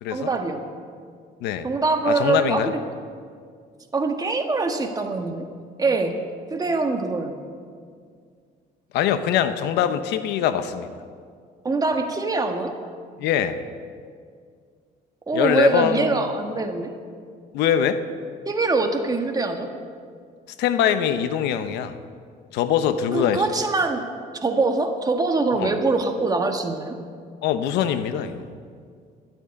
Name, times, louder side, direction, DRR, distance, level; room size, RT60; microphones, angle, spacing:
voice 1, 0.1-0.6 1.6-2.8 3.9-5.5 5.8-6.2 6.5-7.4 11.6-12.8 15.3-16.9 18.4-19.7 23.1-24.1 24.3-27.0, right 3 dB, 20° right, 4 dB, 1.4 m, -23 dB
voice 2, 2.1-2.7 8.9-10.9 13.2-13.6 15.3-16.3 17.5-18.0 20.6-22.0 22.5-23.4 25.6-25.7 27.4-28.4, left 9 dB, 85° left, 11 dB, 0.8 m, -23 dB
12.0 x 8.8 x 8.8 m, 2.1 s
cardioid pair, 110°, 17 cm